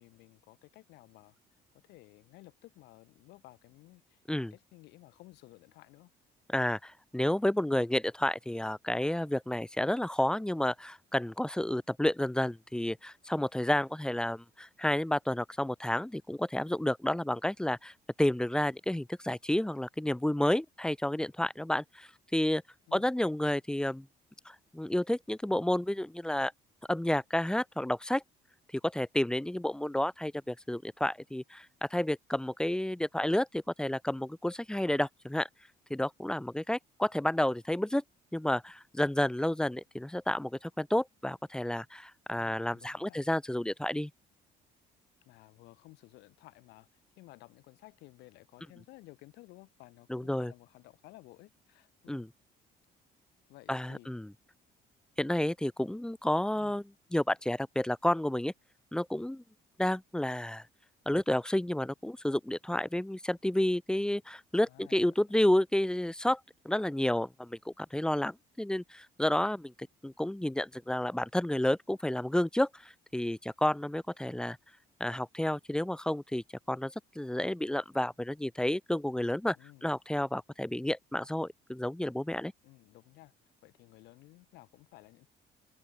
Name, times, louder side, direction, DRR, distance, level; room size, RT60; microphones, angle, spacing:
voice 1, 0.0-6.1 22.9-23.1 42.3-43.2 45.2-46.9 47.2-52.3 53.5-54.1 56.6-56.8 64.7-65.0 79.5-79.9 82.6-83.3 83.6-85.3, left 20 dB, 90° left, 5.7 m, -56 dB
voice 2, 6.5-17.9 18.2-22.6 22.9-24.1 24.4-26.5 26.9-28.2 28.8-35.5 35.9-38.0 38.3-44.1 50.1-50.5 52.1-52.3 53.7-54.3 55.2-56.8 57.1-58.5 58.9-59.4 59.8-60.6 61.1-66.4 66.6-69.7 70.0-74.6 75.0-79.6 79.8-82.5, left 1 dB, 5° left, 1.2 m, -30 dB
cardioid pair, 110°, 17 cm